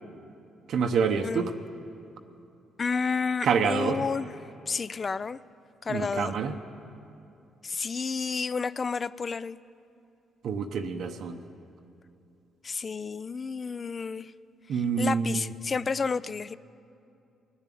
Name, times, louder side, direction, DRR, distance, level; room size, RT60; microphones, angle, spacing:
voice 1, 0.7-1.5 3.4-4.0 5.9-6.6 10.4-11.4 14.7-15.5, right 6 dB, 70° right, 6 dB, 0.7 m, -27 dB
voice 2, 2.8-4.3 4.7-5.4 5.8-6.4 7.6-9.6 12.6-14.3 14.7-16.5, left 5 dB, 35° left, 18 dB, 0.3 m, -31 dB
20.5 x 7.2 x 8.4 m, 2.6 s
cardioid pair, 90°, 0 cm